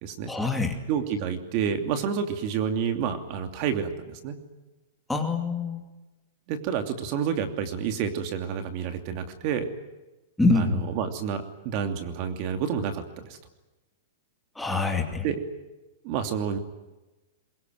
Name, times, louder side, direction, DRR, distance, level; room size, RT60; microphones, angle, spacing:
voice 1, 0.3-0.8 5.1-5.8 10.4-10.8 14.6-15.3, left 3 dB, 5° left, 3 dB, 2.5 m, -25 dB
voice 2, 0.9-4.4 6.5-9.7 10.5-13.4 15.2-15.4 16.0-16.6, right 7 dB, 40° right, 7 dB, 2.7 m, -29 dB
23.5 x 22.0 x 9.4 m, 1.1 s
hypercardioid pair, 150°, 0 cm